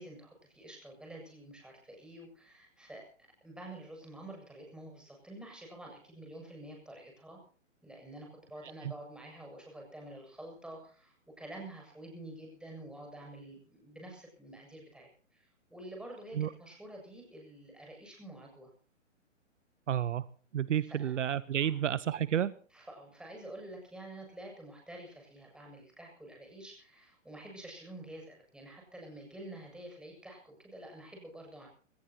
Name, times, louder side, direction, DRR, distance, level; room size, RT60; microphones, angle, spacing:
voice 1, 0.0-3.1 3.4-7.4 7.8-18.7 20.9-21.1 21.6-21.8 22.7-31.7, right 1 dB, ahead, 0 dB, 7.8 m, -48 dB
voice 2, 19.9-20.2 20.5-22.5, right 10 dB, 70° right, 18 dB, 1.0 m, -30 dB
22.5 x 19.5 x 3.0 m, 0.42 s
hypercardioid pair, 140°, 38 cm